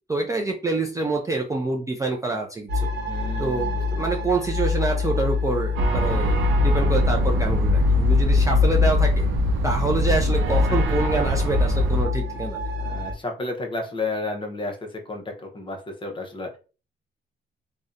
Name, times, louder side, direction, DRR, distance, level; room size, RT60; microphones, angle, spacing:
voice 1, 0.1-2.9 3.4-3.7 4.0-9.3 9.6-12.6, right 3 dB, 15° right, 1 dB, 0.4 m, -26 dB
sound 1, 2.7-13.1, left 5 dB, 60° right, 0.8 m, -26 dB
voice 2, 3.1-4.0 12.8-16.6, left 2 dB, 25° left, 2 dB, 0.7 m, -32 dB
sound 2, 5.8-12.1, left 1 dB, 80° right, 0.5 m, -22 dB
2.6 x 2.1 x 2.4 m, 0.35 s
cardioid pair, 90°, 20 cm